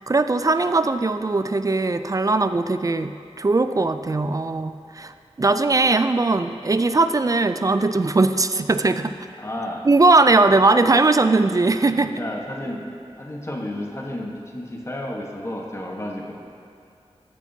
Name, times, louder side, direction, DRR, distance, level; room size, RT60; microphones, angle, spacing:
voice 1, 0.0-9.1 9.8-12.1, right 3 dB, 30° right, 10 dB, 0.4 m, -19 dB
voice 2, 9.4-9.9 11.9-16.3, left 1 dB, 25° left, -1 dB, 1.2 m, -32 dB
14.0 x 7.1 x 2.8 m, 2.5 s
wide cardioid pair, 65°, 11 cm